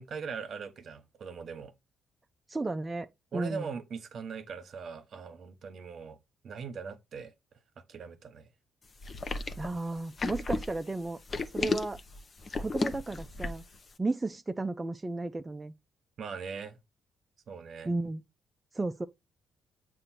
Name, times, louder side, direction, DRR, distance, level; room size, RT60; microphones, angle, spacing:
voice 1, 0.0-1.7 3.3-6.2 6.4-7.3 7.9-8.5 16.2-16.8 17.5-17.9, right 6 dB, 55° right, 1.1 m, -40 dB
voice 2, 2.5-3.7 9.6-11.2 11.5-12.0 12.6-13.6 14.0-15.7 17.8-18.2 18.7-19.1, right 2 dB, 20° right, 0.4 m, -33 dB
sound 1, 9.0-13.8, left 3 dB, 35° left, 0.8 m, -34 dB
7.6 x 2.6 x 5.7 m
cardioid pair, 90°, 0 cm